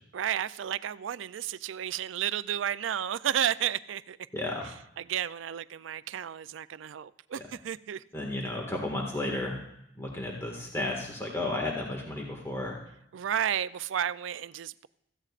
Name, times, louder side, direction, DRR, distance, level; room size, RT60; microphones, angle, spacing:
voice 1, 0.1-4.2 5.0-8.0 13.1-14.9, right 10 dB, 85° right, 16 dB, 0.4 m, -32 dB
voice 2, 4.3-4.7 7.4-7.5 8.1-9.6 10.0-12.8, left 2 dB, 15° left, -1 dB, 1.8 m, -33 dB
16.5 x 14.5 x 2.5 m, 0.79 s
head